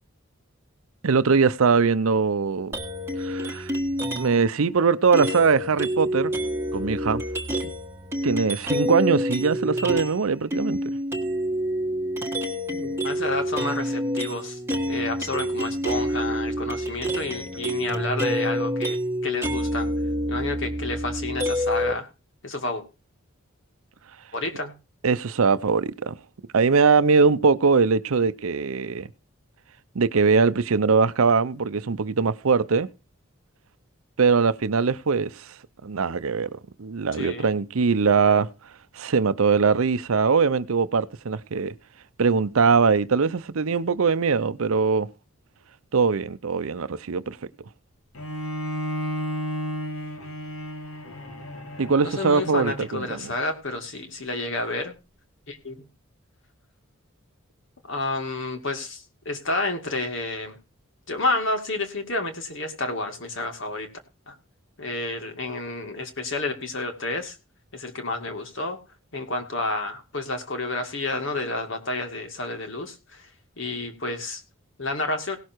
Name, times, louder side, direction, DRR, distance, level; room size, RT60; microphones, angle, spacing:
voice 1, 1.0-2.7 3.2-3.7 4.1-6.3 6.7-7.2 7.6-7.7 8.2-10.8 25.0-26.2 26.5-29.1 29.9-32.9 34.2-35.5 35.8-38.5 39.0-41.7 42.2-45.1 45.9-47.4 51.8-53.2, right 5 dB, 75° right, 0.6 m, -21 dB
sound 1, 2.7-4.5 5.1-10.2 10.5-21.9, equal, 10° right, 1.5 m, -28 dB
voice 2, 12.7-14.6 14.9-19.9 20.3-22.1 22.4-22.8 24.3-24.8 37.1-37.5 52.0-55.0 55.5-55.9 57.9-60.6 61.1-63.9 64.3-64.4 64.8-67.4 67.7-68.8 69.1-73.3 73.6-74.4 74.8-75.4, left 2 dB, 60° left, 2.4 m, -30 dB
Bowed string instrument, 48.1-53.4, equal, 85° left, 2.5 m, -33 dB
17.5 x 6.6 x 4.6 m
head